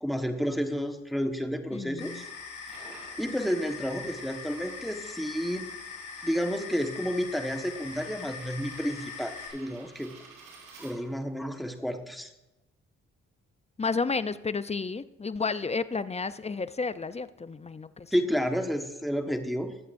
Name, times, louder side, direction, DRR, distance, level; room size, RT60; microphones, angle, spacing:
voice 1, 0.0-2.2 2.8-5.7 6.2-10.1 10.8-12.3 18.1-19.8, equal, ahead, 5 dB, 1.4 m, -31 dB
voice 2, 1.7-2.2 13.8-18.1, left 4 dB, 20° left, 14 dB, 0.5 m, -32 dB
sound 1, 2.0-9.5, left 5 dB, 85° left, 3.4 m, -42 dB
sound 2, 2.4-11.4, right 4 dB, 80° right, 4.0 m, -54 dB
20.5 x 8.0 x 2.6 m, 1.0 s
supercardioid pair, 50°, 32 cm